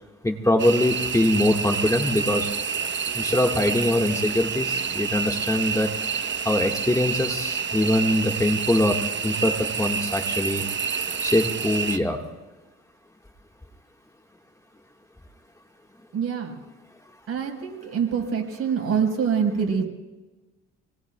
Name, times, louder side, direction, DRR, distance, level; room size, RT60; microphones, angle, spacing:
voice 1, 0.2-2.5 3.1-5.9 6.4-9.0 9.2-10.6 11.2-12.2, left 1 dB, 10° left, 2 dB, 1.5 m, -23 dB
sound 1, 0.6-12.0, right 6 dB, 40° right, 0.9 m, -28 dB
voice 2, 16.1-16.5 17.3-19.8, right 7 dB, 55° right, 1 dB, 4.4 m, -25 dB
27.5 x 19.5 x 2.3 m, 1.1 s
cardioid pair, 90°, 30 cm